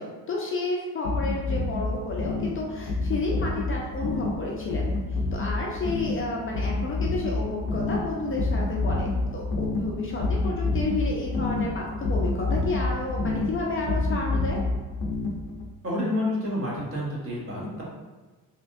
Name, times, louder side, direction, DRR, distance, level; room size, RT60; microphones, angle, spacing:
voice 1, 0.0-14.6, left 2 dB, 35° left, -2 dB, 0.4 m, -31 dB
sound 1, 1.0-15.7, left 3 dB, 85° left, 0.6 m, -28 dB
voice 2, 15.8-17.8, left 1 dB, 35° right, -6 dB, 1.1 m, -29 dB
3.2 x 2.8 x 2.5 m, 1.3 s
cardioid pair, 135°, 38 cm